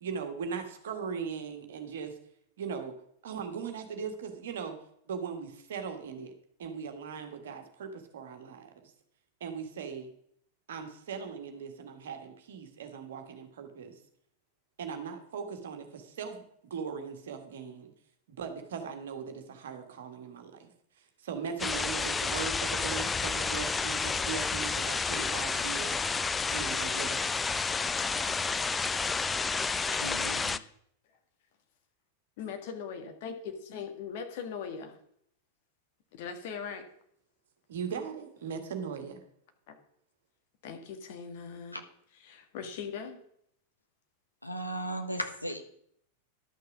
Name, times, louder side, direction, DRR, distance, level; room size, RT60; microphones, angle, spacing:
voice 1, 0.0-2.1 2.6-2.9 3.2-4.8 5.1-6.3 6.6-8.9 9.4-10.1 10.7-14.0 14.8-16.4 16.7-17.9 18.3-20.7 21.2-26.0 26.5-27.5 37.7-39.2, right 6 dB, 60° right, 5 dB, 1.7 m, -39 dB
sound 1, 21.6-30.6, left 4 dB, 15° left, 0.4 m, -30 dB
voice 2, 30.0-30.6 41.7-41.8 44.4-45.6, right 1 dB, 90° left, 6 dB, 1.1 m, -36 dB
voice 3, 32.4-35.0 36.1-36.8 39.7-39.8 40.6-41.8 42.2-43.2, left 6 dB, 50° left, 5 dB, 1.8 m, -40 dB
11.5 x 6.6 x 6.1 m, 0.69 s
figure-of-eight pair, 90°, 0 cm